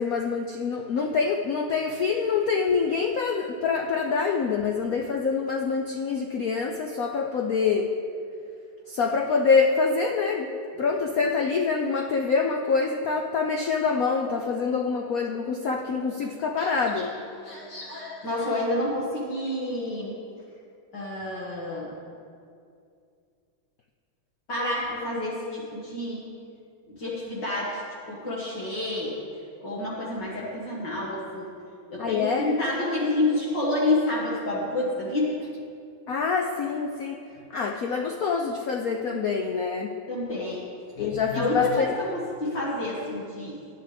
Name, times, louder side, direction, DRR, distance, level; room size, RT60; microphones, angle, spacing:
voice 1, 0.0-7.9 8.9-10.5 10.8-17.1 32.0-32.5 36.1-37.2 37.5-39.9 41.0-41.9, left 5 dB, 75° left, 2 dB, 0.8 m, -25 dB
voice 2, 16.6-17.1 17.4-20.1 20.9-21.9 24.5-26.2 27.0-27.8 28.1-29.2 29.6-31.5 31.9-35.4 40.1-40.6 41.0-43.6, left 2 dB, 55° left, -7 dB, 2.6 m, -29 dB
19.5 x 11.0 x 3.5 m, 2.4 s
omnidirectional pair, 2.4 m